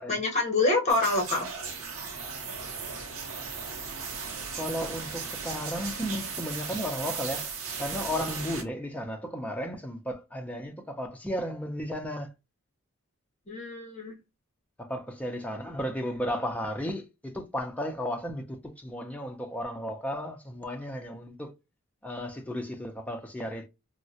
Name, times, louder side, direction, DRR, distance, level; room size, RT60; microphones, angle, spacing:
voice 1, 0.1-1.5 13.5-14.2, left 2 dB, 30° left, 0.9 m, -26 dB
sound 1, 0.9-8.6, right 5 dB, 70° right, 0.7 m, -36 dB
voice 2, 4.6-7.5 7.8-12.3 14.8-21.5 22.0-23.7, equal, 5° left, 0.4 m, -34 dB
3.6 x 2.0 x 2.7 m
head